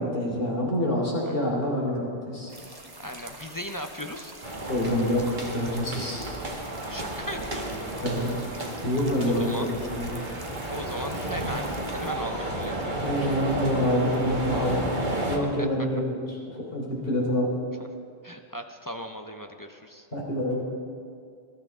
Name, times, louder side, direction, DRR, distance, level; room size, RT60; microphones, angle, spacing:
voice 1, 0.0-2.5 4.7-6.2 8.0-8.5 8.8-9.5 9.9-10.1 13.0-16.2 16.5-17.5 20.1-20.6, equal, 65° left, -3 dB, 3.8 m, -27 dB
sound 1, 2.5-12.1, right 2 dB, 25° right, 1.2 m, -45 dB
voice 2, 3.0-4.3 6.9-7.9 9.2-9.7 10.7-13.0 15.4-15.7 18.2-20.1, equal, 25° left, 4 dB, 0.6 m, -37 dB
sound 2, 4.4-15.4, right 1 dB, 50° right, 1.7 m, -32 dB
20.5 x 13.0 x 3.7 m, 2.4 s
omnidirectional pair, 1.0 m